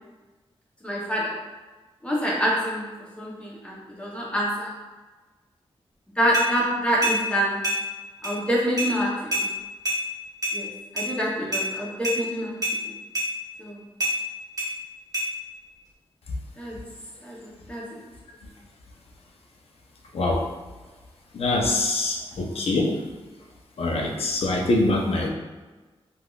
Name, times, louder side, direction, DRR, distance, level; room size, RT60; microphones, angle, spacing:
voice 1, 0.8-1.4 2.0-2.9 3.2-4.7 6.2-7.6 8.2-9.5 10.5-10.7 10.9-12.6 12.8-13.0 13.6-13.8 16.6-16.8 17.2-18.0, equal, 10° left, -4 dB, 0.7 m, -26 dB
sound 1, 6.3-6.5 7.0-7.2 7.6-7.8 8.2-8.3 8.8-8.9 9.3-9.5 9.8-10.0 10.4-10.6 11.0-11.1 11.5-11.7 12.0-12.2 12.6-12.8 13.1-13.3 14.0-14.1 14.6-14.7 15.1-15.3, equal, 35° right, 0.9 m, -25 dB
voice 2, 20.1-20.5 21.3-23.0 23.8-25.3, left 2 dB, 70° left, 0 dB, 0.5 m, -24 dB
3.4 x 2.4 x 2.3 m, 1.3 s
wide cardioid pair, 130°, 10 cm